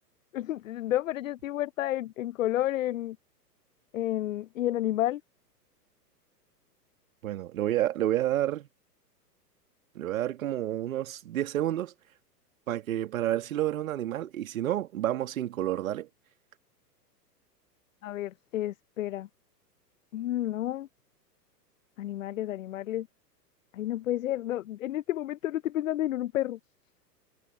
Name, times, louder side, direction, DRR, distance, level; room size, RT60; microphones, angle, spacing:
voice 1, 0.3-3.2 3.9-5.2 18.0-19.3 20.1-20.9 22.0-23.1 23.7-26.6, left 13 dB, 55° left, 0.5 m, -31 dB
voice 2, 7.2-8.7 10.0-11.9 12.7-16.1, right 12 dB, 55° right, 2.1 m, -29 dB
figure-of-eight pair, 110°, 49 cm